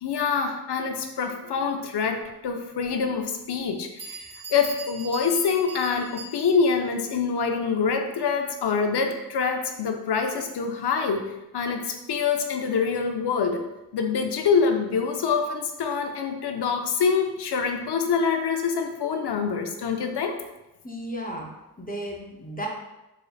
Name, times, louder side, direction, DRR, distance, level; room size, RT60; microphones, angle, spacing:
voice 1, 0.0-13.6 13.9-20.4, left 5 dB, 90° left, 5 dB, 0.5 m, -25 dB
Bell, 2.8-2.9 3.6-3.7 4.0-6.8, right 3 dB, 55° right, 0.9 m, -41 dB
voice 2, 20.8-21.5 21.8-22.7, equal, 20° left, -1 dB, 0.6 m, -34 dB
3.8 x 3.2 x 2.3 m, 0.97 s
wide cardioid pair, 75°, 39 cm